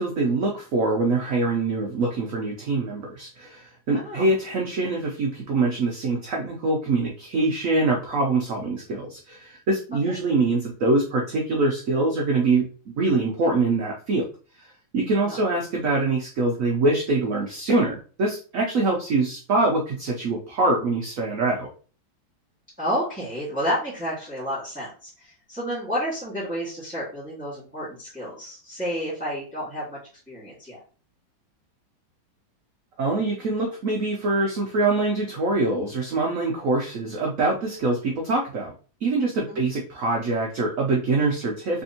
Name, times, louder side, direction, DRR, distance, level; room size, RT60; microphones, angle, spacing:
voice 1, 0.0-12.7 13.0-14.3 14.9-21.7 33.0-38.7 39.0-41.8, right 3 dB, 90° right, 0 dB, 0.7 m, -24 dB
voice 2, 3.9-4.3 10.0-10.1 15.2-15.4 22.8-30.0 30.3-30.8 39.5-39.6, equal, 5° right, -11 dB, 1.6 m, -30 dB
3.4 x 3.4 x 2.7 m, 0.39 s
omnidirectional pair, 2.2 m